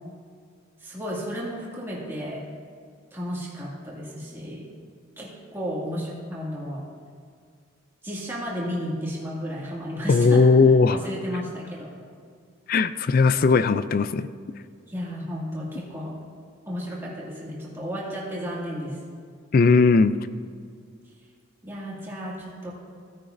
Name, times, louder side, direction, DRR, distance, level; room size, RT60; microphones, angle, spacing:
voice 1, 0.8-2.5 3.1-4.7 5.2-6.8 8.0-10.5 10.9-11.9 14.9-16.2 16.7-19.0 21.6-22.7, equal, 10° right, -6 dB, 2.2 m, -33 dB
voice 2, 10.1-11.0 12.7-14.3 19.5-20.2, left 4 dB, 45° left, 13 dB, 0.3 m, -18 dB
17.0 x 9.7 x 2.6 m, 2.2 s
head